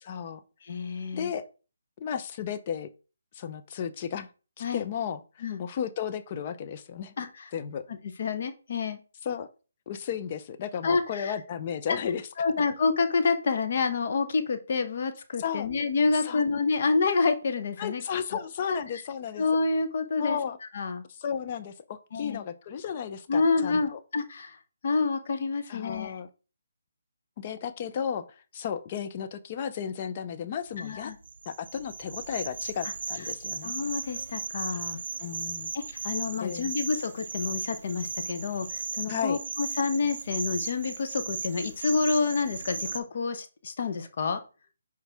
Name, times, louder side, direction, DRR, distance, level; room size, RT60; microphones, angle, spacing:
voice 1, 0.0-0.4 1.1-1.4 2.0-2.9 3.3-4.3 4.6-7.1 7.5-7.8 9.2-9.5 9.9-12.3 15.4-15.7 16.2-16.4 17.8-19.5 20.2-20.6 21.1-24.0 25.7-26.3 27.4-28.2 28.5-31.1 31.5-33.7 35.2-35.7 36.4-36.7 39.1-39.4, left 8 dB, 35° left, 10 dB, 0.6 m, -34 dB
voice 2, 0.6-1.3 4.6-4.8 5.4-5.6 7.2-7.4 8.2-9.0 10.8-11.3 12.4-18.0 18.7-18.8 19.4-20.4 20.7-21.0 22.1-22.4 23.3-24.6 24.8-26.2 30.8-31.2 33.6-35.0 35.7-44.4, left 4 dB, 50° left, 9 dB, 1.0 m, -28 dB
sound 1, 30.7-43.0, right 4 dB, 70° right, 0.8 m, -36 dB
6.0 x 4.7 x 3.5 m, 0.33 s
hypercardioid pair, 160°, 0 cm